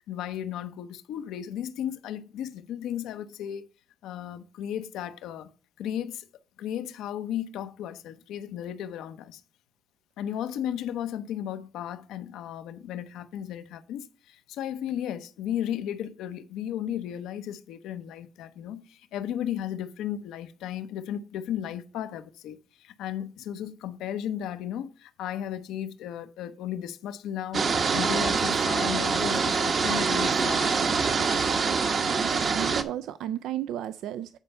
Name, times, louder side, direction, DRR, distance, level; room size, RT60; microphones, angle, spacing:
voice 1, 0.1-3.6 4.0-5.5 5.8-6.2 6.6-9.4 10.2-30.7, left 10 dB, 90° left, 0.7 m, -35 dB
sound 1, 27.5-32.8, right 5 dB, 50° right, 0.9 m, -25 dB
voice 2, 32.2-34.4, right 12 dB, 85° right, 0.3 m, -33 dB
9.1 x 4.4 x 5.4 m
cardioid pair, 90°, 0 cm